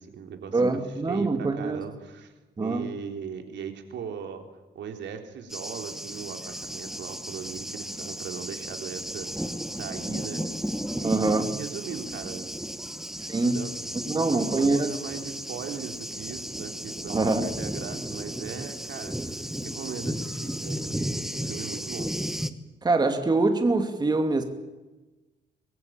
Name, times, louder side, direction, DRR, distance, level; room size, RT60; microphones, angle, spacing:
voice 1, 0.0-2.3 2.6-4.5 4.7-10.5 10.9-12.6 12.9-13.0 13.5-22.1, right 7 dB, 80° right, 5 dB, 3.7 m, -39 dB
voice 2, 0.5-1.8 2.6-2.9 11.0-11.5 13.3-13.6 14.1-14.9 17.1-17.5 22.8-24.4, right 3 dB, 20° right, 6 dB, 2.4 m, -24 dB
Thunder, 5.5-22.5, equal, ahead, 1.3 m, -34 dB
24.5 x 21.5 x 9.0 m, 1.1 s
cardioid pair, 145°, 18 cm